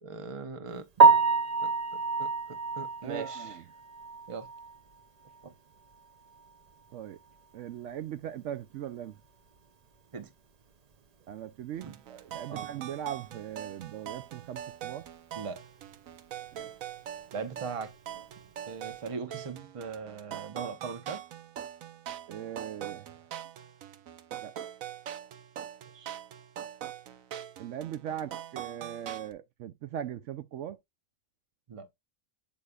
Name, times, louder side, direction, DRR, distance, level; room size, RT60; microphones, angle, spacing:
voice 1, 0.0-1.1 1.6-1.7 2.2-3.6 4.3-4.5 5.4-5.5 10.1-10.3 11.8-12.0 12.5-12.7 15.4-15.6 17.3-17.9 18.7-21.2 25.9-26.2 31.7-31.9, right 5 dB, 30° right, 0.8 m, -40 dB
Piano, 1.0-5.0 5.3-5.4 5.9-6.0 6.4-6.5 9.6-9.7 18.1-18.4, right 4 dB, 50° right, 0.4 m, -25 dB
voice 2, 3.0-3.6 6.9-7.2 7.5-9.2 11.3-15.1 16.5-16.7 22.3-23.1 24.4-24.5 27.6-30.8, right 10 dB, 70° right, 0.9 m, -39 dB
sound 1, 11.7-29.3, right 10 dB, 90° right, 1.2 m, -43 dB
8.2 x 5.4 x 2.3 m
omnidirectional pair, 1.4 m